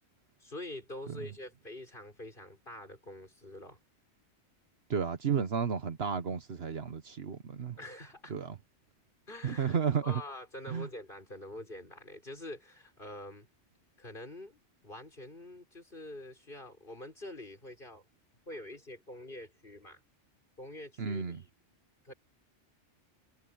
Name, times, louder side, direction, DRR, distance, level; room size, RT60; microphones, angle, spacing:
voice 1, 0.4-3.8 7.8-8.3 9.3-13.5 14.0-18.0 18.5-20.0 20.6-21.5 22.0-22.1, left 1 dB, 45° left, 6.2 m, -46 dB
voice 2, 4.9-7.8 8.3-8.6 9.4-10.2 10.7-10.9 21.0-21.4, right 6 dB, 60° right, 1.3 m, -32 dB
omnidirectional pair, 1.2 m